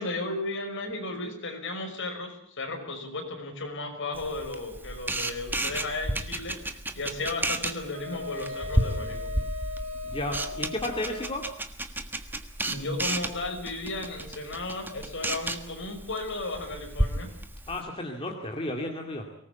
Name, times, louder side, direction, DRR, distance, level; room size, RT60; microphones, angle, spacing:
voice 1, 0.0-6.5 7.0-9.3 12.6-17.3, left 2 dB, 55° left, 4 dB, 5.9 m, -34 dB
Camera, 4.1-17.8, right 1 dB, 10° right, 1.5 m, -33 dB
Wind instrument woodwind instrument, 7.9-11.5, left 3 dB, 60° right, 4.3 m, -38 dB
voice 2, 10.1-11.4 17.7-19.3, left 1 dB, 25° left, 1 dB, 2.6 m, -33 dB
24.0 x 19.0 x 8.4 m, 0.65 s
head